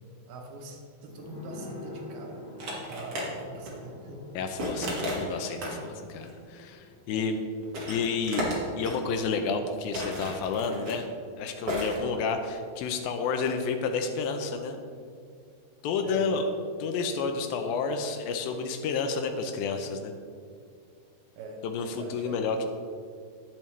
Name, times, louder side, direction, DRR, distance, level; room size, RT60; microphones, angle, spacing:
voice 1, 0.3-4.2 5.7-5.9 7.1-7.3 16.0-16.3 21.4-22.6, right 2 dB, 80° right, 2 dB, 2.8 m, -43 dB
sound 1, 1.1-10.3 10.6-10.7, left 2 dB, 65° left, 3.3 m, -48 dB
sound 2, 2.6-3.3 3.5-3.7 4.6-5.8 6.2-6.3 7.2-7.3 7.6-9.0 9.9-11.0 11.7-12.0, equal, 50° right, 1.7 m, -33 dB
voice 2, 4.4-7.4 7.9-8.4 8.8-11.1 11.4-14.8 15.8-16.5 16.8-20.1 21.6-22.7, left 5 dB, 85° left, 6 dB, 2.1 m, -30 dB
8.9 x 8.7 x 3.2 m, 2.3 s
omnidirectional pair, 4.7 m